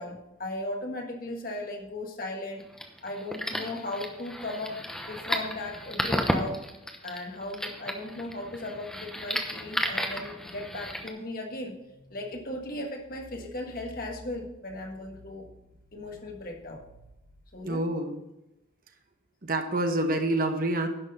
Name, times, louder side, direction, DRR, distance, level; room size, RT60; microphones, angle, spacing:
voice 1, 0.0-2.6 3.0-4.8 5.1-6.6 7.0-15.5 15.9-16.8 17.5-17.8, left 2 dB, 50° left, 2 dB, 1.6 m, -37 dB
sound 1, 2.6-11.1, equal, 5° left, 0.9 m, -33 dB
voice 2, 17.6-18.2 19.4-20.9, right 1 dB, 45° right, 6 dB, 1.0 m, -27 dB
11.0 x 6.3 x 5.4 m, 0.92 s
head